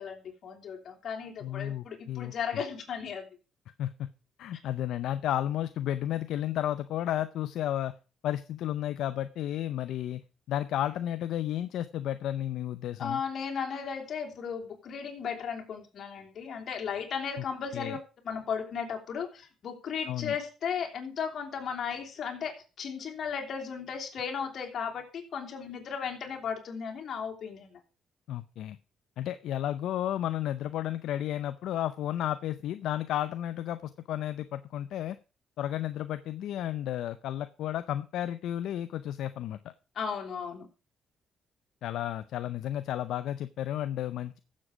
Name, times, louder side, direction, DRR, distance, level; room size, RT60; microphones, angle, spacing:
voice 1, 0.0-3.2 13.0-18.0 18.2-27.8 39.9-40.7, left 6 dB, 60° left, 2 dB, 3.2 m, -35 dB
voice 2, 1.4-2.3 3.8-4.1 4.4-7.9 8.2-10.2 10.5-13.2 17.4-17.5 17.7-18.0 20.1-20.3 28.3-28.8 29.2-35.2 35.6-39.6 41.8-44.4, left 12 dB, 80° left, 12 dB, 0.5 m, -32 dB
14.5 x 7.6 x 4.9 m, 0.34 s
cardioid pair, 90°, 0 cm